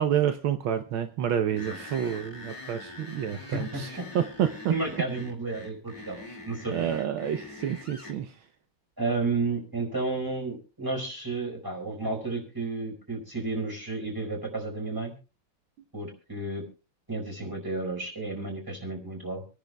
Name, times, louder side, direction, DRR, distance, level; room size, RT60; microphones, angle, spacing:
voice 1, 0.0-4.7 6.7-8.4, right 9 dB, 75° right, 8 dB, 1.5 m, -29 dB
sound 1, 1.6-8.2, left 2 dB, 15° left, 2.8 m, -44 dB
voice 2, 3.3-4.1 4.7-7.0 9.0-15.1 15.9-16.6 17.1-19.4, right 3 dB, 10° right, 2 dB, 4.5 m, -32 dB
27.0 x 10.5 x 2.2 m, 0.34 s
omnidirectional pair, 2.4 m